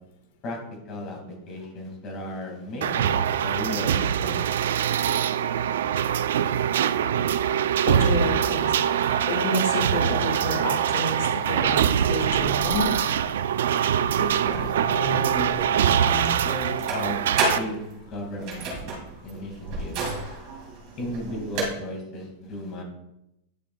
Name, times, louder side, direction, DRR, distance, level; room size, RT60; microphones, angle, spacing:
voice 1, 0.9-1.2 1.5-3.1 3.4-4.4 14.2-17.2 17.5-19.0 19.2-20.0 21.0-22.8, left 1 dB, 25° left, 1 dB, 2.1 m, -35 dB
sound 1, 2.8-17.6, right 9 dB, 90° right, 0.3 m, -23 dB
voice 2, 7.8-13.0, left 2 dB, 65° left, 2 dB, 1.7 m, -29 dB
sound 2, 12.3-21.7, right 3 dB, 35° right, 2.6 m, -33 dB
10.5 x 6.8 x 2.3 m, 0.84 s
supercardioid pair, 175°, 0 cm